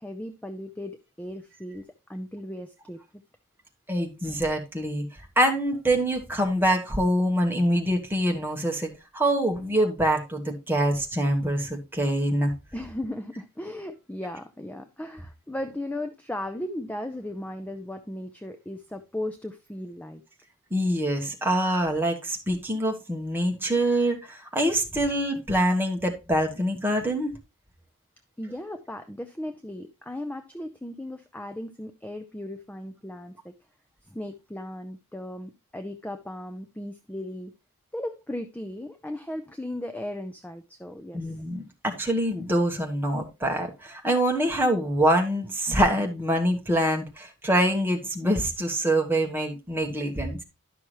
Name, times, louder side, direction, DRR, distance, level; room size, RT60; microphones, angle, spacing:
voice 1, 0.0-3.0 12.7-20.2 28.4-33.5 34.0-37.5 37.9-41.4, left 1 dB, 5° left, 7 dB, 0.4 m, -36 dB
voice 2, 3.9-5.1 5.4-12.5 20.7-27.3 41.1-50.4, right 1 dB, 10° right, 2 dB, 1.2 m, -25 dB
11.5 x 5.9 x 3.0 m, 0.26 s
head